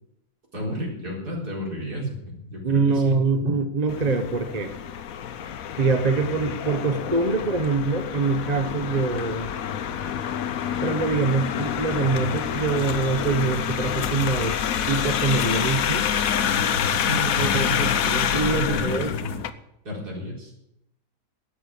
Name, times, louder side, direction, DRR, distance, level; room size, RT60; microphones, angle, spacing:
voice 1, 0.5-3.2 16.7-17.9 18.3-19.4 19.8-20.5, equal, 65° right, -2 dB, 4.8 m, -31 dB
voice 2, 2.6-4.7 5.8-9.5 10.8-14.6 14.9-16.1 17.4-19.1, right 4 dB, 30° right, 8 dB, 0.8 m, -24 dB
sound 1, 3.9-19.5, left 8 dB, 65° left, 1.1 m, -27 dB
13.0 x 8.7 x 8.3 m, 0.82 s
omnidirectional pair, 1.8 m